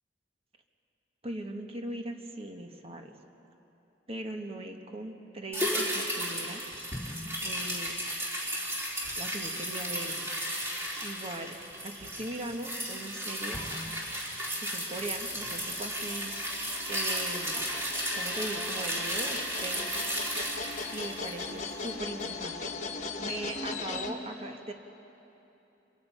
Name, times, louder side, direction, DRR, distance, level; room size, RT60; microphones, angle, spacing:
voice 1, 1.2-3.1 4.1-6.6 6.9-7.1 7.4-7.9 9.2-10.7 11.0-11.5 11.8-13.7 14.6-17.6 18.1-19.9 20.9-24.7, right 1 dB, 35° right, 4 dB, 1.4 m, -40 dB
sound 1, 5.5-22.0 22.3-22.4, equal, 15° right, 3.7 m, -34 dB
sound 2, 15.0-24.1, left 4 dB, 40° left, 1.3 m, -39 dB
26.5 x 23.5 x 5.6 m, 3.0 s
head